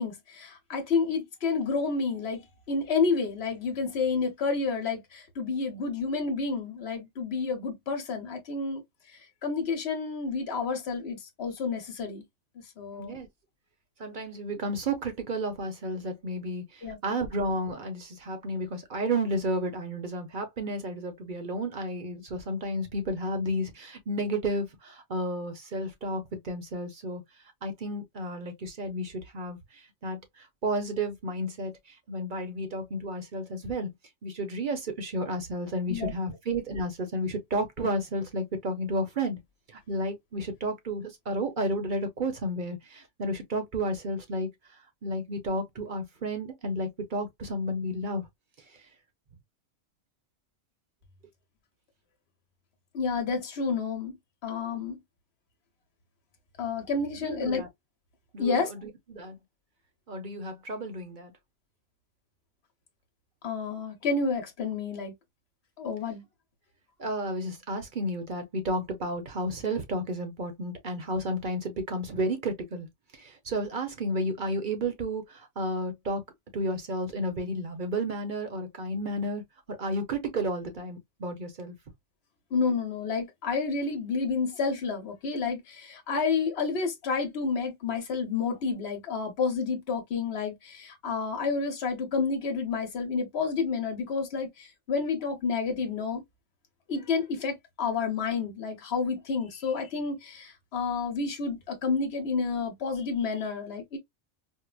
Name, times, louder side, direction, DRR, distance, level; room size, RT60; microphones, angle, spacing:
voice 1, 0.0-2.4 2.7-8.8 9.1-12.2 12.8-13.1 16.8-17.2 35.9-36.1 52.9-54.2 54.4-55.0 56.6-57.6 58.4-58.7 63.4-65.1 65.8-66.2 82.5-96.2 96.9-104.0, left 4 dB, 55° left, 1.2 m, -30 dB
voice 2, 13.0-13.3 14.0-27.2 27.6-33.9 34.2-39.4 39.9-44.5 45.0-48.3 57.2-57.7 58.3-59.4 60.1-61.3 67.0-72.9 73.1-76.2 76.5-79.4 79.7-81.7, right 1 dB, 45° right, 0.9 m, -32 dB
4.7 x 2.1 x 2.2 m
omnidirectional pair, 1.3 m